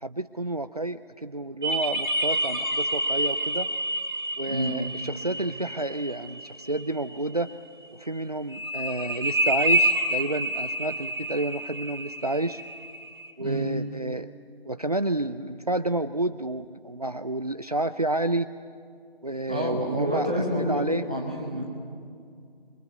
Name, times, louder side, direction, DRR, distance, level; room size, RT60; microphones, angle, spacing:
voice 1, 0.0-3.7 4.4-7.5 8.0-12.6 13.4-14.3 14.7-18.5 19.2-21.0, right 2 dB, 40° right, 11 dB, 0.5 m, -30 dB
sound 1, 1.6-7.2 8.5-13.3, right 1 dB, 25° right, 1.9 m, -28 dB
voice 2, 13.4-13.7 19.5-21.6, equal, 5° right, -3 dB, 1.0 m, -28 dB
26.5 x 23.0 x 8.1 m, 2.4 s
figure-of-eight pair, 170°, 30 cm